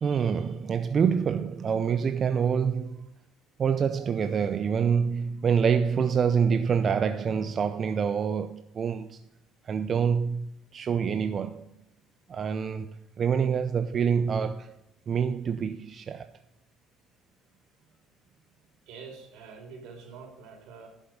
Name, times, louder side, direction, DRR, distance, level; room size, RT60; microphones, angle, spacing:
voice 1, 0.0-3.1 3.6-9.2 9.6-11.7 12.3-14.8 15.1-16.3, right 6 dB, 40° right, 0.6 m, -26 dB
voice 2, 18.9-20.9, right 5 dB, 75° right, 4.1 m, -45 dB
11.0 x 7.5 x 5.3 m
cardioid pair, 105°, 0 cm